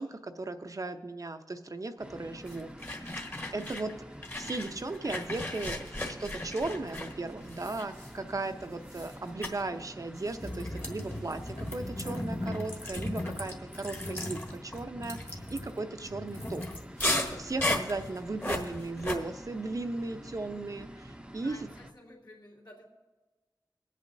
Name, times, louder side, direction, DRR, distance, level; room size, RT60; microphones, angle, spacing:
voice 1, 0.0-2.7 3.5-3.9 4.4-16.6 17.1-21.6, right 2 dB, 45° right, 8 dB, 0.7 m, -36 dB
sound 1, 2.0-21.9, equal, 10° right, 0.7 m, -48 dB
sound 2, 2.5-3.9 4.2-8.5 8.9-9.1 9.4-9.6 10.3-19.2, left 1 dB, 30° left, 1.4 m, -36 dB
voice 2, 21.4-22.9, left 1 dB, 65° left, -5 dB, 2.6 m, -52 dB
23.0 x 8.3 x 2.7 m, 1.3 s
wide cardioid pair, 65°, 8 cm